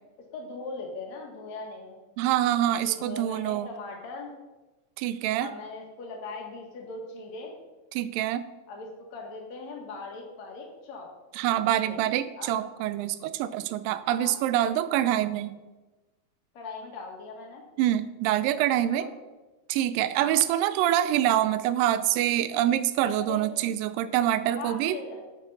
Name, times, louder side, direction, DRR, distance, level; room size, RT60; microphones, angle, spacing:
voice 1, 0.3-2.0 2.8-4.3 5.4-7.6 8.7-11.1 11.7-12.0 12.4-12.7 14.2-14.4 16.5-17.6 18.7-19.1 20.2-20.4 23.0-23.5 24.6-25.2, left 3 dB, 55° left, 1 dB, 2.6 m, -40 dB
voice 2, 2.2-3.7 5.0-5.5 7.9-8.4 11.3-15.6 17.8-19.1 19.7-25.0, right 12 dB, 80° right, 14 dB, 2.2 m, -25 dB
8.0 x 7.3 x 5.5 m, 1.1 s
omnidirectional pair, 4.1 m